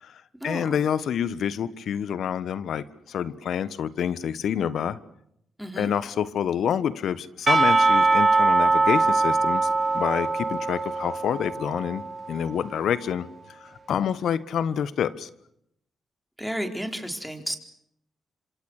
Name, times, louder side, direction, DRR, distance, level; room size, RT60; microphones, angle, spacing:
voice 1, 0.0-5.0 5.8-9.7 9.9-13.3 13.6-15.3, left 8 dB, 75° left, 16 dB, 1.4 m, -27 dB
voice 2, 5.6-5.9 16.4-17.6, equal, ahead, 5 dB, 4.5 m, -32 dB
Percussion / Church bell, 7.5-12.5, right 3 dB, 35° right, 3.6 m, -22 dB
26.5 x 26.5 x 6.6 m, 0.74 s
cardioid pair, 75°, 0 cm